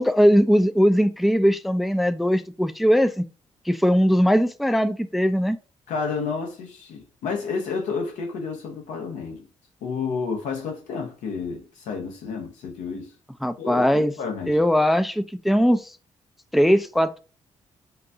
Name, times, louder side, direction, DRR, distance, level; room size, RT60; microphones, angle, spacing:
voice 1, 0.0-3.2 3.7-5.6 13.4-14.1 14.5-15.9 16.5-17.2, equal, ahead, 0.3 m, -20 dB
voice 2, 5.9-9.4 9.8-13.1 13.6-14.6, left 5 dB, 80° left, 0.8 m, -30 dB
3.7 x 2.3 x 2.6 m
supercardioid pair, 50°, 12 cm